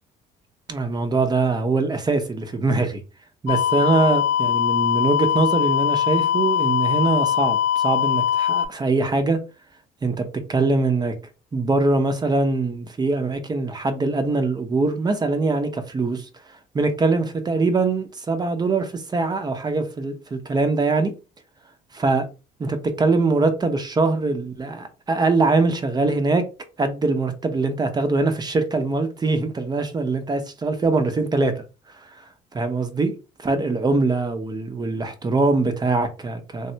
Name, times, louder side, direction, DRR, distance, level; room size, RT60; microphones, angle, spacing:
voice 1, 0.7-3.0 3.4-9.4 10.0-11.1 11.5-16.3 16.7-21.1 21.9-22.2 22.6-26.4 26.8-31.6 32.5-33.1 33.4-36.7, right 3 dB, 25° right, 0.6 m, -22 dB
sound 1, 3.5-8.7, left 10 dB, 85° left, 0.6 m, -21 dB
3.5 x 2.1 x 2.8 m
cardioid pair, 110°, 17 cm